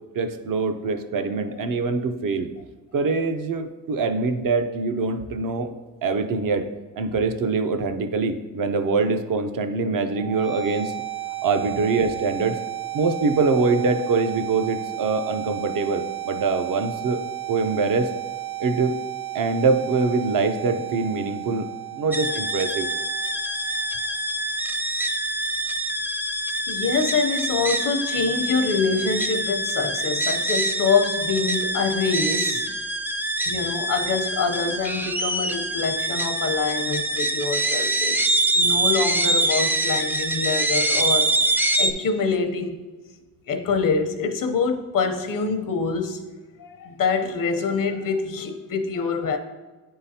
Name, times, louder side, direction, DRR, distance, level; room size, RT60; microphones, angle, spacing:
voice 1, 0.1-2.5 2.9-5.7 6.0-6.7 7.0-10.9 11.4-12.6 12.9-17.2 17.5-18.1 18.6-19.0 19.3-22.9, right 4 dB, 65° right, 7 dB, 0.6 m, -24 dB
sound 1, 10.1-24.1, right 16 dB, 90° right, 1.1 m, -33 dB
sound 2, 22.1-41.9, right 1 dB, 5° right, 0.3 m, -25 dB
voice 2, 26.7-32.6 33.5-41.3 41.8-42.8 43.5-46.2 46.6-49.4, left 4 dB, 65° left, 6 dB, 0.7 m, -25 dB
9.6 x 3.8 x 2.7 m, 1.3 s
cardioid pair, 90°, 35 cm